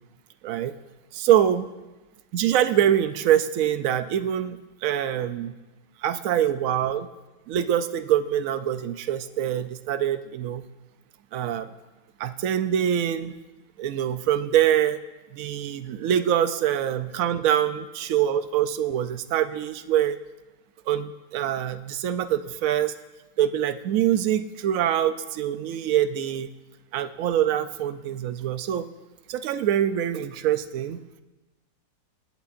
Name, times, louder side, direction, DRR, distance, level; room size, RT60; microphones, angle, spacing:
voice 1, 0.4-0.7 1.1-1.7 2.3-5.6 6.0-7.1 7.5-10.6 11.3-11.7 12.2-13.3 13.8-15.0 15.3-20.2 20.9-22.9 23.4-26.5 26.9-28.9 29.3-31.0, right 10 dB, 70° right, 10 dB, 0.8 m, -24 dB
25.5 x 8.7 x 2.5 m, 1.1 s
omnidirectional pair, 2.0 m